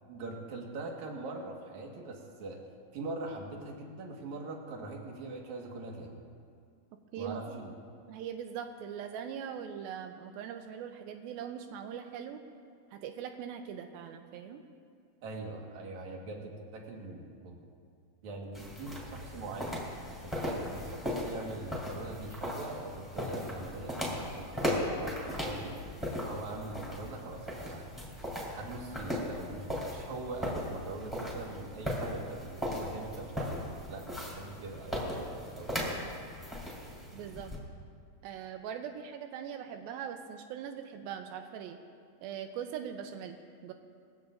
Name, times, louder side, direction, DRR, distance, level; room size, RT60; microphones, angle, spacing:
voice 1, 0.1-2.6 2.9-6.2 7.2-7.7 15.2-17.6 18.2-19.9 20.3-25.8 26.2-27.9 28.5-36.0, right 3 dB, 55° right, 0 dB, 2.3 m, -42 dB
voice 2, 7.1-7.6 8.1-12.4 12.9-14.6 37.1-37.5 38.2-41.8 42.2-43.4 43.6-43.7, right 8 dB, 90° right, 6 dB, 2.1 m, -41 dB
sound 1, 18.5-37.6, left 1 dB, ahead, 3.3 m, -37 dB
22.5 x 16.5 x 2.6 m, 2.2 s
omnidirectional pair, 5.1 m